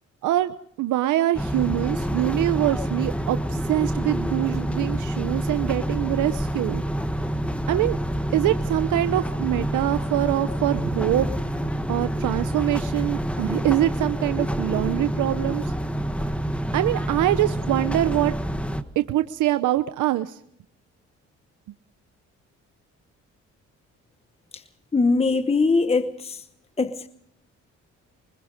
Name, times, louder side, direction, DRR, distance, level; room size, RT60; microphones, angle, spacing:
voice 1, 0.2-6.8 7.7-8.0 8.3-11.3 11.9-15.7 16.7-18.3 19.0-20.4, right 14 dB, 80° right, 0.8 m, -24 dB
sound 1, 1.3-18.8, right 1 dB, 5° left, 1.4 m, -27 dB
voice 2, 24.9-26.4 26.8-27.1, left 3 dB, 20° left, 1.0 m, -21 dB
24.5 x 20.5 x 5.2 m
cardioid pair, 90°, 30 cm